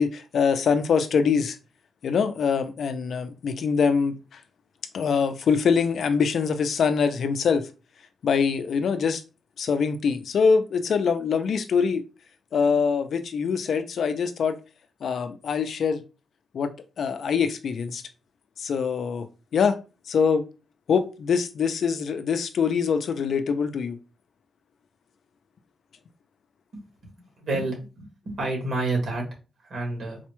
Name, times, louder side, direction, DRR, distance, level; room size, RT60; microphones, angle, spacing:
voice 1, 0.0-1.6 2.0-4.4 4.9-7.7 8.2-9.2 9.6-12.0 12.5-14.6 15.0-16.0 16.5-18.0 18.6-19.3 19.5-19.8 20.1-20.4 20.9-24.0, left 6 dB, 60° left, 0.4 m, -24 dB
voice 2, 27.4-29.2 29.6-30.2, right 2 dB, 55° right, 1.6 m, -29 dB
4.0 x 2.2 x 3.0 m
wide cardioid pair, 155°, 0 cm